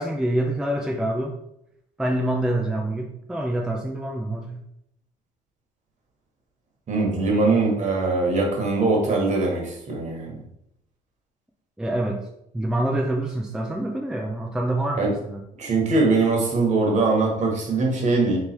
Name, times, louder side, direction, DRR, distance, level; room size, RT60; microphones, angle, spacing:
voice 1, 0.0-1.4 2.0-4.6 11.8-12.2 12.5-15.4, right 1 dB, 5° right, 1 dB, 0.5 m, -26 dB
voice 2, 6.9-10.3 14.9-15.1 15.6-18.4, right 3 dB, 45° right, 0 dB, 1.3 m, -22 dB
3.3 x 3.2 x 4.4 m, 0.78 s
cardioid pair, 110°, 17 cm